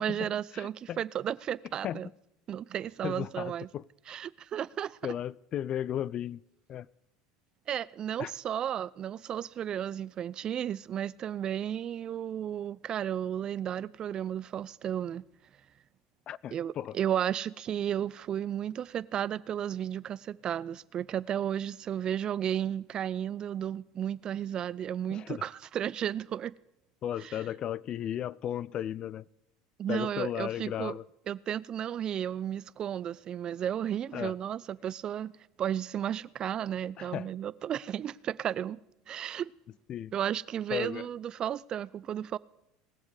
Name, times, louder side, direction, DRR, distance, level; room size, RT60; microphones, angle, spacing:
voice 1, 0.0-2.1 2.5-3.7 4.1-5.1 7.7-15.2 16.5-26.5 27.2-27.4 29.8-31.0 31.3-35.3 35.6-38.8 39.1-39.5 40.1-42.4, right 10 dB, 40° right, 0.4 m, -33 dB
voice 2, 0.5-1.0 1.8-2.1 3.0-3.8 5.0-6.4 6.7-6.9 8.2-8.3 16.3-17.0 25.1-25.5 27.0-29.3 29.9-31.1 34.1-34.4 37.0-37.3 39.9-40.1 40.7-41.1, left 10 dB, 45° left, 0.4 m, -35 dB
20.5 x 7.4 x 4.8 m
hypercardioid pair, 90°, 2 cm